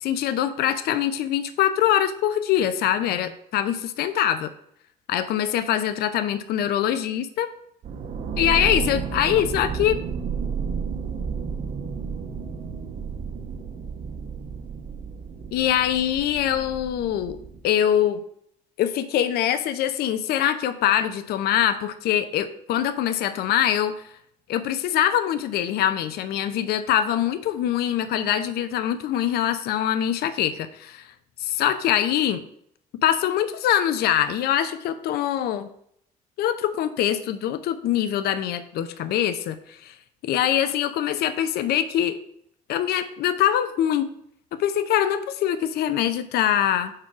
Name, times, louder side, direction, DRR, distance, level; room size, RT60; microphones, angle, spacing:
voice 1, 0.0-4.5 5.1-7.5 8.4-10.0 15.5-17.4 17.6-18.2 18.8-24.0 24.5-31.1 31.4-32.4 33.0-35.7 36.4-39.9 40.2-42.2 42.7-44.1 44.5-46.9, left 10 dB, 70° left, 11 dB, 0.6 m, -23 dB
sound 1, 7.8-17.6, right 6 dB, 50° right, 0.8 m, -32 dB
4.7 x 4.6 x 6.0 m, 0.69 s
cardioid pair, 110°, 17 cm